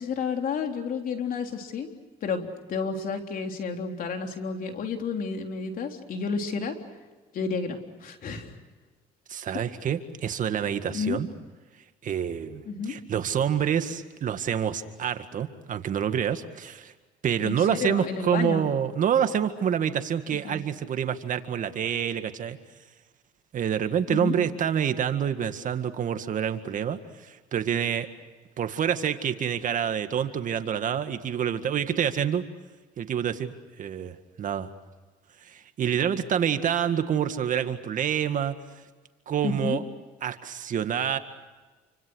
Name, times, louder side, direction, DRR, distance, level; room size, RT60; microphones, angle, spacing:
voice 1, 0.0-1.9 2.2-6.8 7.3-8.6 10.9-11.2 12.7-13.0 17.4-18.6 20.4-20.6 24.1-24.4 39.4-39.8, left 5 dB, 55° left, 4 dB, 3.6 m, -31 dB
voice 2, 9.3-11.3 12.0-16.9 17.2-22.6 23.5-28.1 28.6-32.4 33.0-34.7 35.4-38.5 39.3-39.8 40.2-41.2, right 8 dB, 50° right, 9 dB, 1.9 m, -27 dB
28.5 x 25.5 x 6.4 m, 1.3 s
cardioid pair, 95°, 17 cm